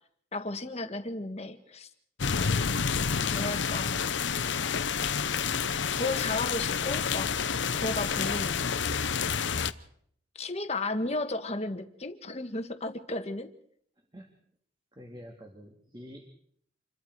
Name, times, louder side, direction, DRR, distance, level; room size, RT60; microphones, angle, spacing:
voice 1, 0.3-1.9 3.2-4.0 6.0-7.3 7.7-8.7 10.3-13.5, left 2 dB, 35° left, 8 dB, 1.7 m, -34 dB
sound 1, 2.2-9.7, left 6 dB, 75° left, 0.8 m, -29 dB
voice 2, 15.0-16.3, equal, 25° right, 1 dB, 2.6 m, -47 dB
28.0 x 23.0 x 4.8 m, 0.66 s
head